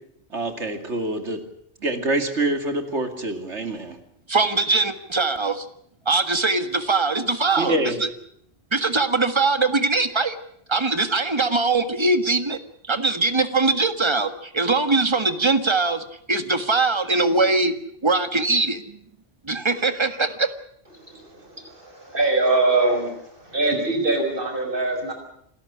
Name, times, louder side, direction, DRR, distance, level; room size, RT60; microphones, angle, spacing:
voice 1, 0.3-1.4 1.8-4.0 7.6-8.0, right 2 dB, 75° right, 7 dB, 2.9 m, -25 dB
voice 2, 4.3-5.6 6.0-8.1 8.7-10.4 10.7-12.6 12.8-17.7 18.0-19.0 19.4-20.5, right 3 dB, 25° right, 9 dB, 1.7 m, -22 dB
voice 3, 21.0-25.1, right 2 dB, 50° right, 3 dB, 6.1 m, -23 dB
28.0 x 13.5 x 9.9 m, 0.71 s
omnidirectional pair, 1.2 m